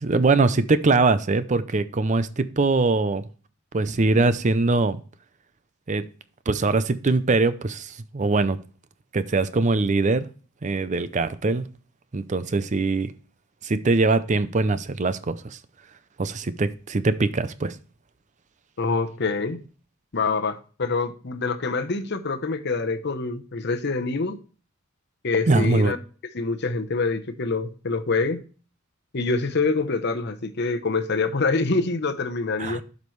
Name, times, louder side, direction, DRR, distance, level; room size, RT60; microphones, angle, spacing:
voice 1, 0.0-3.2 3.7-5.0 5.9-6.0 6.5-8.6 9.1-10.3 10.6-11.6 12.1-13.1 13.6-15.6 16.2-17.8 25.5-25.9 32.6-32.8, right 3 dB, 35° right, 0.5 m, -22 dB
voice 2, 18.8-19.6 20.1-24.4 25.2-26.0 26.3-28.4 29.1-32.8, left 3 dB, 55° left, 0.8 m, -25 dB
12.0 x 5.3 x 3.2 m
head